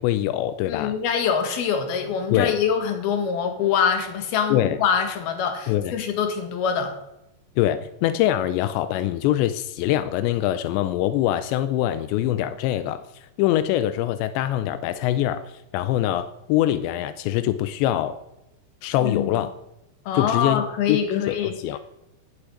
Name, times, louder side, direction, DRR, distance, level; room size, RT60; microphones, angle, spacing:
voice 1, 0.0-1.0 2.3-2.5 4.5-4.8 5.7-5.9 7.6-18.2 18.8-19.5 20.1-20.6 20.9-21.8, left 13 dB, 90° left, 12 dB, 2.9 m, -24 dB
voice 2, 0.7-7.0 19.0-19.5 20.1-21.6, left 7 dB, 65° left, 6 dB, 3.5 m, -24 dB
11.5 x 8.6 x 9.7 m, 0.89 s
omnidirectional pair, 5.0 m